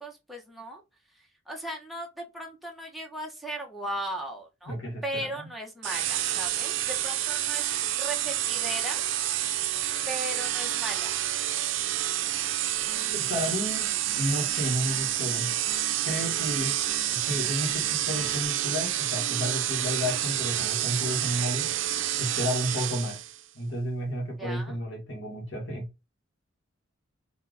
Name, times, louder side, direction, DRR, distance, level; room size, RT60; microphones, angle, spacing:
voice 1, 0.0-0.8 1.1-4.7 5.0-7.7 8.0-9.0 10.1-11.1 24.4-24.8, right 1 dB, ahead, 1.1 m, -37 dB
voice 2, 4.7-5.5 13.1-13.9 14.2-15.5 16.0-16.8 17.1-21.7 22.2-23.2 23.5-25.9, equal, 65° left, 2.0 m, -32 dB
sound 1, 5.8-23.4, right 12 dB, 65° right, 0.5 m, -29 dB
Telephone, 12.8-18.4, left 4 dB, 50° left, 0.9 m, -47 dB
4.2 x 3.2 x 3.3 m
head